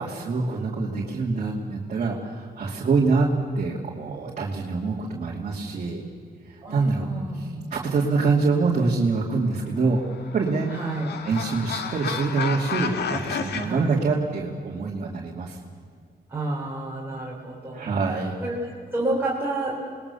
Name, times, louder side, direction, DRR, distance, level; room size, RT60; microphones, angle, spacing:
voice 1, 0.0-6.0 6.5-7.1 7.3-10.0 10.3-10.7 11.2-15.6 17.7-18.4, right 4 dB, 45° right, -2 dB, 2.7 m, -25 dB
voice 2, 6.6-7.6 10.7-11.1 13.6-13.9 16.3-18.6 18.9-19.8, right 2 dB, 15° right, -6 dB, 4.1 m, -30 dB
sound 1, 9.8-13.7, left 6 dB, 85° left, 1.9 m, -31 dB
28.5 x 20.5 x 7.0 m, 2.2 s
wide cardioid pair, 150°, 17 cm